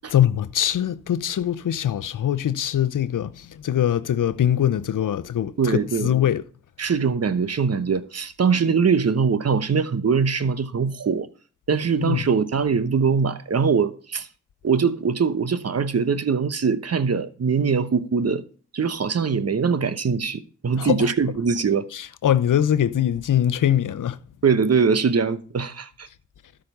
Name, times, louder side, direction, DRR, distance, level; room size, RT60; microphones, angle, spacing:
voice 1, 0.1-6.4 12.0-12.2 20.8-21.1 21.9-24.2, left 10 dB, 75° left, 0.7 m, -22 dB
voice 2, 5.6-6.1 6.8-11.3 11.7-14.3 14.6-18.4 18.7-21.8 24.4-26.1, right 5 dB, 50° right, 1.0 m, -22 dB
13.0 x 5.2 x 5.4 m
supercardioid pair, 40°, 32 cm